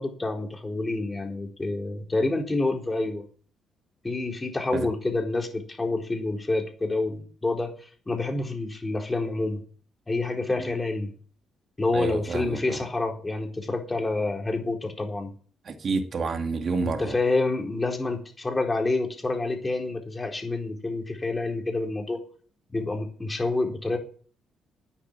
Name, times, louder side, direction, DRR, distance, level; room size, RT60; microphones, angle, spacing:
voice 1, 0.0-3.2 4.0-9.6 10.1-11.1 11.8-15.3 16.8-22.2 22.7-24.0, left 2 dB, 20° left, 4.3 m, -28 dB
voice 2, 11.9-12.8 15.6-17.2, right 4 dB, 50° right, 2.5 m, -29 dB
11.0 x 9.5 x 7.6 m
cardioid pair, 90°, 0 cm